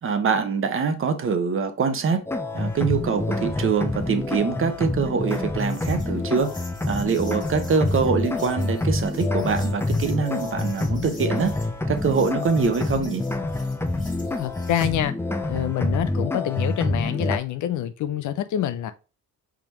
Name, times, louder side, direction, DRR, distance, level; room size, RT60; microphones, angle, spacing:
voice 1, 0.0-2.3 2.5-6.5 6.9-11.5 11.9-13.3, right 5 dB, 45° right, 1.0 m, -24 dB
sound 1, 2.3-17.4, left 2 dB, 10° left, 0.6 m, -27 dB
sound 2, 2.7-14.9, left 3 dB, 25° left, 1.5 m, -45 dB
voice 2, 14.4-15.1 15.4-18.9, left 11 dB, 75° left, 0.6 m, -26 dB
4.9 x 3.6 x 2.9 m
cardioid pair, 90°, 30 cm